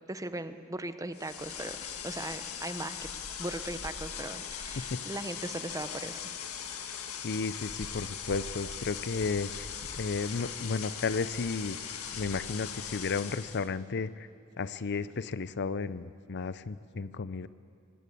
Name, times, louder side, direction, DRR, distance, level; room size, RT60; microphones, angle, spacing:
voice 1, 0.1-1.8 2.0-3.0 3.4-6.2, right 2 dB, 15° right, 10 dB, 0.9 m, -38 dB
sound 1, 1.1-13.7, left 7 dB, 75° left, 1.7 m, -40 dB
voice 2, 7.1-9.7 9.9-11.8 12.1-14.3 14.6-17.5, left 4 dB, 50° left, 15 dB, 0.6 m, -33 dB
25.0 x 18.5 x 8.5 m, 2.2 s
head